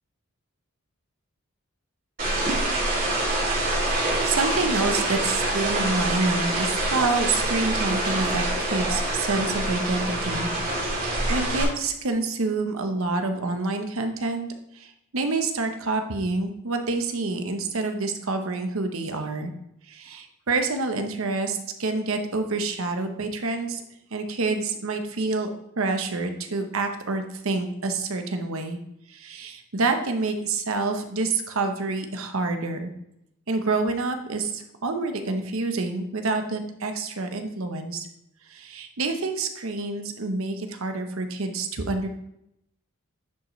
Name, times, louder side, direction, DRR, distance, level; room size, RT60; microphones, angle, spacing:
sound 1, 2.2-11.6, right 1 dB, 40° right, 2.9 m, -25 dB
voice 1, 4.0-10.5 10.8-14.5 14.7-19.5 19.9-23.8 24.1-25.5 25.8-28.8 29.1-32.9 33.5-38.1 38.5-42.1, right 3 dB, 70° right, 6 dB, 0.9 m, -27 dB
10.5 x 5.1 x 3.2 m, 0.81 s
head